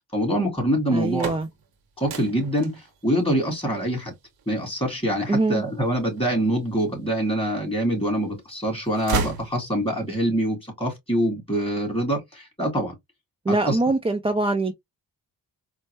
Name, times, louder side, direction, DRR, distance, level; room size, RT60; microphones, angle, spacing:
voice 1, 0.1-1.3 2.0-4.1 4.5-13.0 13.5-13.8, equal, 15° left, 2.3 m, -25 dB
voice 2, 0.9-1.5 5.3-5.6 13.4-14.7, right 2 dB, 15° right, 0.4 m, -23 dB
sound 1, 0.9-6.8 7.4-8.2 8.5-10.1, right 4 dB, 85° right, 1.0 m, -34 dB
4.4 x 2.1 x 3.0 m
wide cardioid pair, 115°, 36 cm